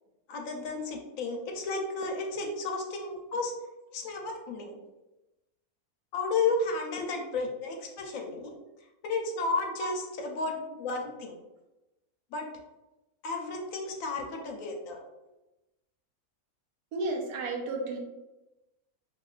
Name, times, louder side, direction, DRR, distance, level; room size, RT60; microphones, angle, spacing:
voice 1, 0.3-3.5 3.9-4.8 6.1-8.5 9.0-11.4 12.3-12.5 13.2-15.0, left 3 dB, 70° left, 1 dB, 0.9 m, -32 dB
voice 2, 16.9-18.0, right 3 dB, 85° right, 0 dB, 1.2 m, -33 dB
2.9 x 2.7 x 2.3 m, 1.0 s
omnidirectional pair, 1.6 m